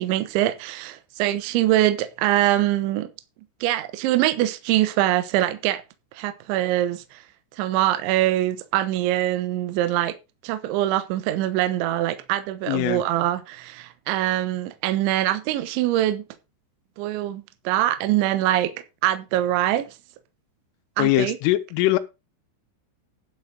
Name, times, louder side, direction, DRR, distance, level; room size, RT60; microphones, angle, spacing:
voice 1, 0.0-3.1 3.6-5.8 6.1-7.2 7.6-10.1 10.4-16.2 17.0-18.7 19.0-19.9 21.0-21.4, right 14 dB, 75° right, 3.3 m, -23 dB
voice 2, 12.7-13.0 21.0-22.0, left 16 dB, 85° left, 3.5 m, -21 dB
11.0 x 8.0 x 5.2 m
omnidirectional pair, 5.7 m